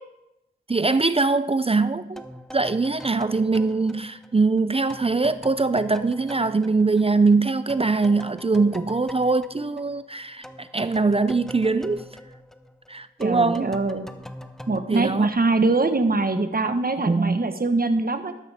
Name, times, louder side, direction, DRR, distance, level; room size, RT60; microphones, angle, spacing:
voice 1, 0.7-2.2 2.5-12.1 12.9-13.8 14.9-15.3 17.1-17.4, right 3 dB, 30° right, 13 dB, 0.5 m, -22 dB
sound 1, 2.2-7.4 7.7-15.9, equal, ahead, 0.9 m, -43 dB
voice 2, 13.2-14.1 14.7-18.3, right 3 dB, 45° right, 8 dB, 1.3 m, -23 dB
13.0 x 12.5 x 3.6 m, 0.88 s
cardioid pair, 40°, 21 cm